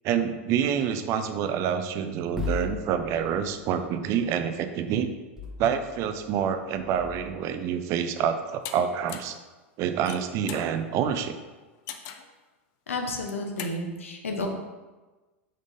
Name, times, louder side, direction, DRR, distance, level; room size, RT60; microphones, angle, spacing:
voice 1, 0.0-5.1 5.6-9.4 9.8-11.4, right 8 dB, 45° right, 9 dB, 0.4 m, -27 dB
sound 1, 2.4-3.5 5.4-6.3 6.7-7.4, left 4 dB, 10° right, 0.7 m, -36 dB
sound 2, 8.6-8.8 9.1-9.4 9.9-10.7 11.9-12.3 13.1-13.8, left 9 dB, 50° left, 0.4 m, -39 dB
voice 2, 12.9-14.5, left 2 dB, 85° left, 2 dB, 0.8 m, -31 dB
5.1 x 3.7 x 2.6 m, 1.2 s
hypercardioid pair, 95°, 7 cm